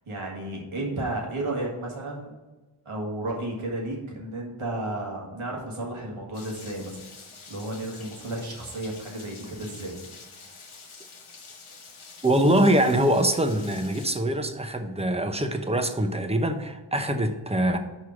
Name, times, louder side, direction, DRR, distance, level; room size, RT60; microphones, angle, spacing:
voice 1, 0.0-2.3 2.9-7.0 7.5-9.9, right 1 dB, 85° right, -2 dB, 1.8 m, -33 dB
Rain, 6.3-14.1, left 4 dB, 80° left, 1.2 m, -47 dB
voice 2, 12.2-17.8, right 1 dB, 15° right, 7 dB, 0.8 m, -23 dB
5.5 x 4.9 x 6.3 m, 1.2 s
cardioid pair, 55°, 49 cm